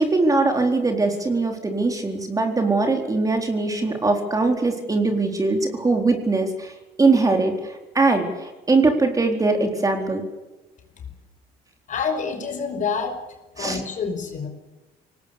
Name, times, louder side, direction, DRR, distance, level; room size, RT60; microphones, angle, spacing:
voice 1, 0.0-10.2 13.6-13.8, right 3 dB, 20° right, 4 dB, 4.2 m, -21 dB
voice 2, 11.9-13.2 13.6-14.5, left 5 dB, 50° left, 6 dB, 5.4 m, -27 dB
24.5 x 19.5 x 8.4 m, 1.1 s
cardioid pair, 110°, 17 cm